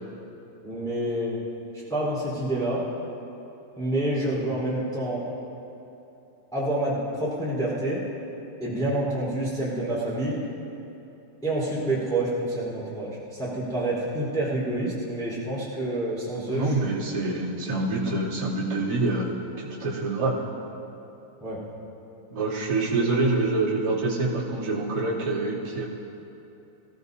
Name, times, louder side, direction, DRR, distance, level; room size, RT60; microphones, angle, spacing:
voice 1, 0.6-1.4 1.9-2.9 3.8-5.2 6.5-8.0 8.6-10.4 11.4-16.9 21.4-21.6, right 1 dB, ahead, -8 dB, 3.8 m, -28 dB
voice 2, 16.5-20.5 22.3-25.9, right 2 dB, 30° right, -11 dB, 3.3 m, -26 dB
25.5 x 16.5 x 2.8 m, 2.9 s
omnidirectional pair, 3.5 m